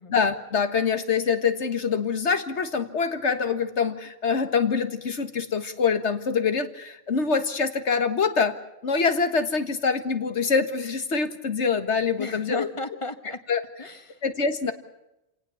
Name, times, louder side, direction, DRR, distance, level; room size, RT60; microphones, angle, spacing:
voice 1, 0.1-8.6 8.8-12.7 13.5-13.6 14.2-14.7, left 5 dB, 90° left, 9 dB, 1.9 m, -25 dB
voice 2, 12.2-13.4 13.8-14.2, left 3 dB, 30° left, 8 dB, 1.7 m, -34 dB
28.0 x 18.0 x 7.1 m, 0.91 s
omnidirectional pair, 1.1 m